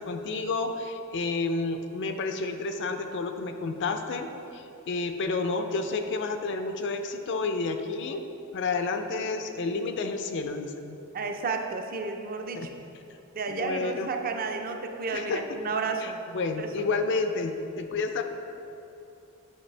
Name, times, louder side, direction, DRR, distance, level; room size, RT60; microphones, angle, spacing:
voice 1, 0.0-8.2 8.5-11.0 12.5-12.7 13.5-14.1 15.1-15.4 16.0-18.2, left 3 dB, 55° left, 6 dB, 0.5 m, -30 dB
voice 2, 11.1-12.7 13.3-16.2 16.6-16.9, right 4 dB, 40° right, 4 dB, 0.5 m, -32 dB
8.7 x 5.5 x 3.3 m, 2.9 s
head